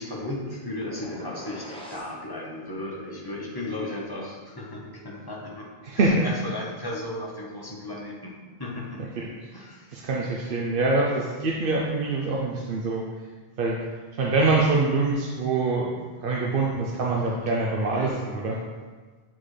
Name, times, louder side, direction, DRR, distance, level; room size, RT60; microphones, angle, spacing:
voice 1, 0.0-5.7 5.9-8.3 8.6-9.0 9.5-10.1 17.9-18.2, left 1 dB, 25° left, -3 dB, 1.0 m, -35 dB
sound 1, 0.9-2.2, left 1 dB, 5° left, 0.8 m, -41 dB
voice 2, 5.8-6.3 9.2-9.3 9.9-13.0 13.6-13.8 14.2-18.6, right 3 dB, 60° right, -3 dB, 0.8 m, -24 dB
8.5 x 3.8 x 3.3 m, 1.4 s
omnidirectional pair, 1.0 m